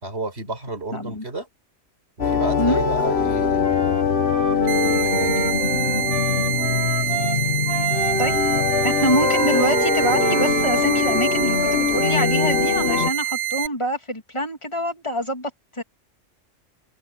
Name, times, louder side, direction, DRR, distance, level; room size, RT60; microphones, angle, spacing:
voice 1, 0.0-1.5 2.2-5.6, right 2 dB, 55° right, 5.2 m, -32 dB
voice 2, 0.9-1.2 2.6-2.8 8.2-8.4 8.8-15.5 15.8-15.9, equal, 25° left, 2.8 m, -25 dB
sound 1, 2.2-13.1, left 6 dB, 55° left, 1.5 m, -22 dB
Wind instrument woodwind instrument, 3.6-7.4 7.7-11.8, right 3 dB, 30° right, 2.4 m, -29 dB
sound 2, 4.7-13.7, right 12 dB, 70° right, 1.0 m, -26 dB
open air
omnidirectional pair, 1.3 m